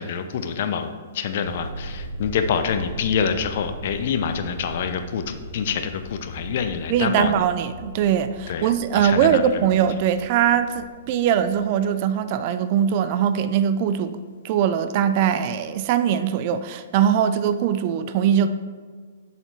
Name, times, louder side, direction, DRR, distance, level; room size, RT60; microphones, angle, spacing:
voice 1, 0.0-7.4 8.5-8.7 8.9-9.6, left 7 dB, 50° left, 8 dB, 0.6 m, -26 dB
sound 1, 1.4-11.8, equal, 70° right, 0.8 m, -39 dB
voice 2, 6.9-14.2 14.4-18.5, right 9 dB, 40° right, 11 dB, 0.4 m, -21 dB
7.7 x 4.3 x 4.5 m, 1.5 s
figure-of-eight pair, 115°, 0 cm